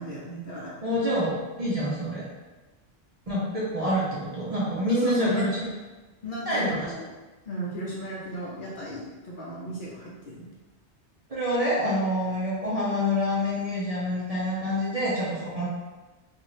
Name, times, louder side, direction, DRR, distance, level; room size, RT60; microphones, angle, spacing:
voice 1, 0.0-1.0 4.9-5.5 6.2-7.0 7.5-10.5, equal, 55° left, -6 dB, 0.7 m, -36 dB
voice 2, 0.8-2.2 3.3-5.7 6.5-6.9 11.3-15.7, equal, 40° right, -8 dB, 0.6 m, -27 dB
2.7 x 2.5 x 3.0 m, 1.2 s
omnidirectional pair, 1.2 m